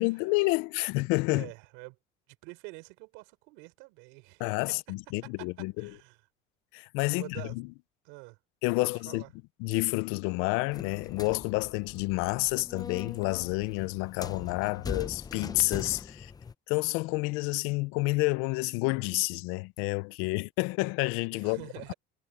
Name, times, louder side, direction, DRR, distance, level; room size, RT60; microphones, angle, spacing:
voice 1, 0.0-1.5 4.4-5.9 6.7-7.4 8.6-9.2 9.6-16.3 16.7-21.6, left 25 dB, 85° left, 0.5 m, -29 dB
voice 2, 1.3-2.0 2.4-4.9 5.2-6.2 7.1-7.6 8.0-8.4 9.1-9.3 21.4-21.9, right 26 dB, 90° right, 4.6 m, -47 dB
sound 1, 10.7-16.5, left 5 dB, 20° left, 0.7 m, -41 dB
cardioid pair, 130°, 21 cm